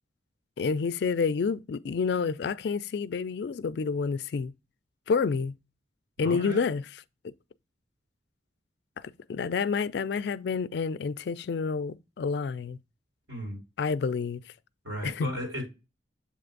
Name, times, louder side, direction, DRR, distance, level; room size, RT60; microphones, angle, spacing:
voice 1, 0.6-4.5 5.1-5.5 6.2-6.8 7.2-7.3 9.0-12.8 13.8-14.4 15.0-15.3, left 5 dB, 60° left, 0.3 m, -29 dB
voice 2, 6.2-6.7 13.3-13.6 14.8-15.7, equal, 80° right, 4.1 m, -35 dB
7.5 x 3.3 x 3.8 m
head